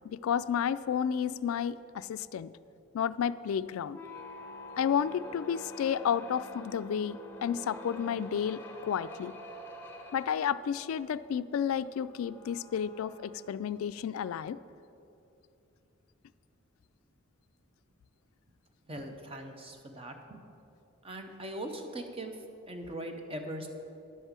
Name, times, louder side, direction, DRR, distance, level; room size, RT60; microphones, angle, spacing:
voice 1, 0.0-2.5 2.9-4.0 4.8-9.3 10.1-14.6, left 8 dB, 90° left, 16 dB, 0.3 m, -31 dB
sound 1, 3.8-14.2, left 1 dB, 10° left, 0.9 m, -48 dB
voice 2, 18.9-20.4 21.0-22.4 22.7-23.7, right 1 dB, 25° right, 4 dB, 0.8 m, -40 dB
11.0 x 5.5 x 7.3 m, 2.8 s
head